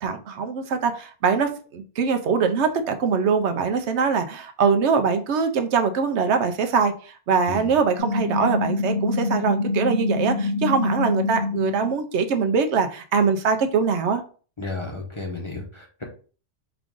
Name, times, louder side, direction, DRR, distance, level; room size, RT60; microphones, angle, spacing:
voice 1, 0.0-14.2, right 5 dB, 75° right, 0.9 m, -23 dB
sound 1, 8.0-11.9, left 3 dB, 65° left, 1.1 m, -25 dB
voice 2, 14.6-16.0, left 3 dB, 30° left, 0.8 m, -33 dB
4.7 x 2.5 x 3.6 m
omnidirectional pair, 1.2 m